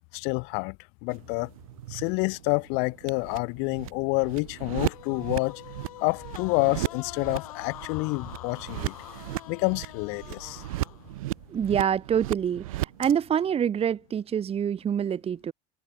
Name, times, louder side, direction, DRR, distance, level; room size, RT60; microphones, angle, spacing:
voice 1, 0.1-0.8 1.0-1.5 1.9-5.6 6.0-8.9 9.5-10.6, left 34 dB, 70° left, 1.8 m, -28 dB
sound 1, 1.1-13.1, right 17 dB, 85° right, 1.1 m, -36 dB
sound 2, 4.9-11.2, left 14 dB, 85° left, 7.9 m, -45 dB
voice 2, 11.5-15.5, right 8 dB, 35° right, 1.0 m, -26 dB
hypercardioid pair, 80°, 18 cm